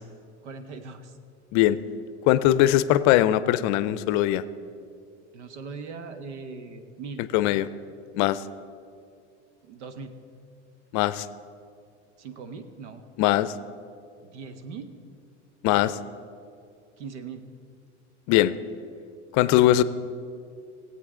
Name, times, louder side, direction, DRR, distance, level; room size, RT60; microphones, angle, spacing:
voice 1, 0.4-1.2 5.3-7.2 9.6-10.1 12.2-13.0 14.2-14.9 17.0-17.4, right 5 dB, 75° right, 9 dB, 1.2 m, -40 dB
voice 2, 2.3-4.4 7.3-7.7 8.1-8.4 10.9-11.3 13.2-13.5 15.6-16.0 18.3-18.5 19.3-19.8, left 14 dB, 50° left, 15 dB, 0.6 m, -20 dB
20.0 x 8.0 x 3.7 m, 2.4 s
hypercardioid pair, 95°, 35 cm